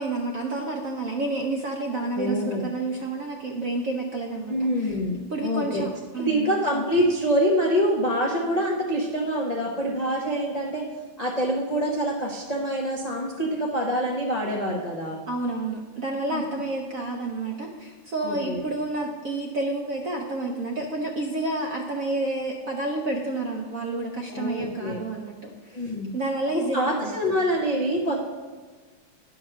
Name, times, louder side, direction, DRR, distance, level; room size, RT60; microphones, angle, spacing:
voice 1, 0.0-5.0 5.3-6.5 15.3-27.4, right 2 dB, 70° right, 1 dB, 0.8 m, -30 dB
voice 2, 1.8-2.6 4.5-5.2 5.4-5.8 6.2-10.9 11.2-15.2 16.3-16.4 18.2-18.6 24.3-25.0 25.7-26.1 26.5-28.2, equal, 80° left, -2 dB, 0.3 m, -25 dB
10.0 x 5.3 x 5.9 m, 1.4 s
omnidirectional pair, 2.4 m